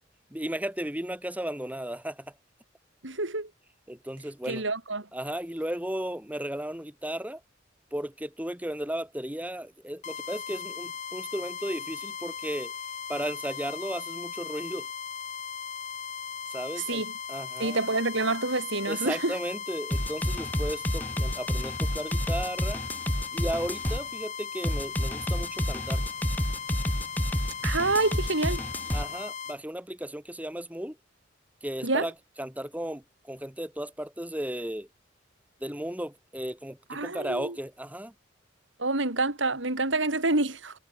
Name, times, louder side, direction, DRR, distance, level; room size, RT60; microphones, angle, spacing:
voice 1, 0.3-2.3 3.9-4.6 5.1-7.4 7.9-12.7 13.1-14.9 16.5-17.0 17.3-17.8 18.8-22.8 23.3-26.0 28.9-31.0 31.6-34.9 35.6-38.1, right 1 dB, 10° right, 3.1 m, -35 dB
voice 2, 3.0-3.5 4.5-5.1 16.9-17.1 17.6-19.4 27.6-28.6 31.8-32.1 36.9-37.6 38.8-40.7, right 2 dB, 70° right, 3.2 m, -27 dB
sound 1, 10.0-29.6, left 6 dB, 40° left, 3.3 m, -38 dB
sound 2, 19.9-24.0 24.6-29.1, equal, 10° left, 2.1 m, -29 dB
head